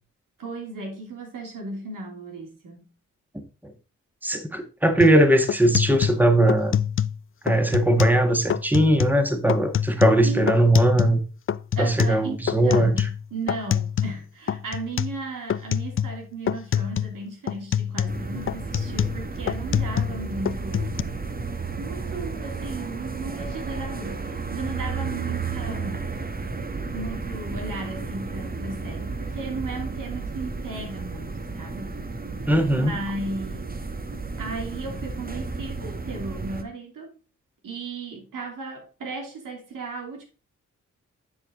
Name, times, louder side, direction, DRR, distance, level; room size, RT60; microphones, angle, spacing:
voice 1, 0.4-2.8 10.2-10.6 11.8-21.2 21.8-26.1 26.9-32.0 32.7-33.7 34.1-37.1 37.6-40.2, right 3 dB, 80° right, 3.0 m, -35 dB
voice 2, 4.2-6.8 7.4-11.2 11.8-13.1 32.5-32.9, right 1 dB, 5° right, 1.7 m, -20 dB
sound 1, 5.0-5.2 5.5-7.2 7.5-8.2 8.5-9.2 9.5-11.2 11.5-14.2 14.5-15.2 15.5-16.2 16.5-17.2 17.5-20.2 20.5-21.0, left 9 dB, 40° left, 0.5 m, -26 dB
sound 2, 18.1-36.6, right 4 dB, 30° right, 1.4 m, -33 dB
10.0 x 4.9 x 3.7 m
cardioid pair, 50°, 32 cm